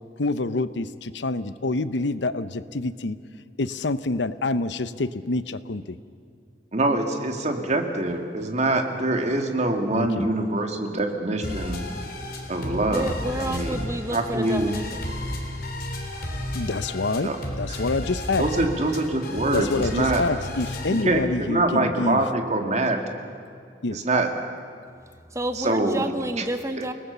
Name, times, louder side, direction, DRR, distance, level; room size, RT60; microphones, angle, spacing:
voice 1, 0.2-3.2 3.6-6.0 9.9-10.3 16.5-17.3 17.6-18.5 19.5-22.2 23.8-24.0, left 2 dB, 80° left, 14 dB, 0.8 m, -27 dB
voice 2, 6.7-11.8 12.5-13.1 13.4-13.8 14.1-14.7 17.2-17.4 17.7-17.8 18.4-20.2 20.9-23.0 23.9-24.3 25.6-26.0 26.4-26.5 26.8-26.9, right 2 dB, 40° right, 4 dB, 2.2 m, -24 dB
sound 1, 11.4-21.0, left 1 dB, 55° left, 3.8 m, -33 dB
voice 3, 12.7-15.1 25.3-26.9, right 1 dB, 15° right, 8 dB, 1.0 m, -30 dB
30.0 x 19.0 x 6.9 m, 2.3 s
head